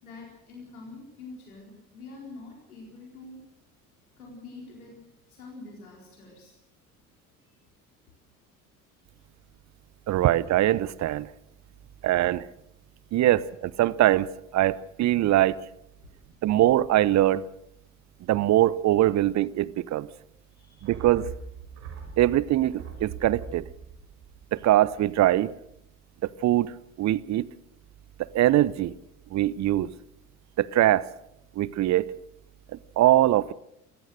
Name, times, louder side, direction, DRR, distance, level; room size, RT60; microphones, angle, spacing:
voice 1, 0.0-3.4 4.2-5.0 5.3-6.5 7.4-7.6 11.8-11.9 19.1-19.2 20.5-20.9, left 3 dB, 75° left, 4.2 m, -46 dB
voice 2, 10.1-11.3 12.0-12.5 13.1-14.3 14.5-15.6 16.4-17.4 18.3-20.1 20.8-21.3 22.2-23.6 24.5-25.5 26.4-26.7 27.0-27.5 28.3-28.9 29.3-29.9 30.6-31.1 31.6-32.1 33.0-33.5, right 14 dB, 40° right, 0.8 m, -22 dB
sound 1, 20.8-25.4 25.7-25.8, right 6 dB, 60° right, 6.0 m, -42 dB
27.5 x 16.0 x 6.4 m
figure-of-eight pair, 60°, 43 cm